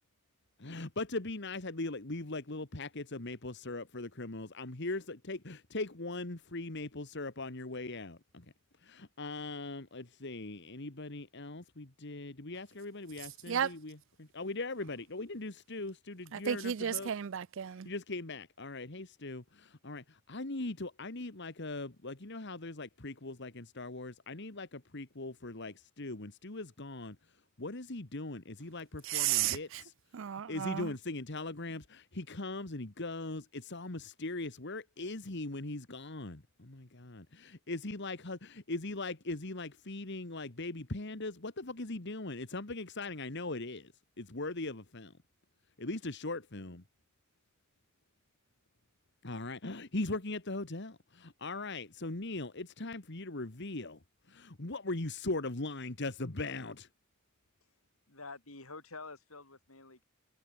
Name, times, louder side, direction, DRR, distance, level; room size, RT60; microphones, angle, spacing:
voice 1, 0.6-8.5 8.8-17.1 17.9-27.2 27.6-29.9 30.5-43.9 44.2-45.1 45.8-46.8 49.2-54.0 54.3-56.9, left 2 dB, 55° left, 1.8 m, -40 dB
voice 2, 16.3-17.9 29.1-29.8 30.1-30.9, right 9 dB, 65° right, 0.5 m, -33 dB
voice 3, 58.1-60.0, left 3 dB, 85° left, 7.7 m, -48 dB
head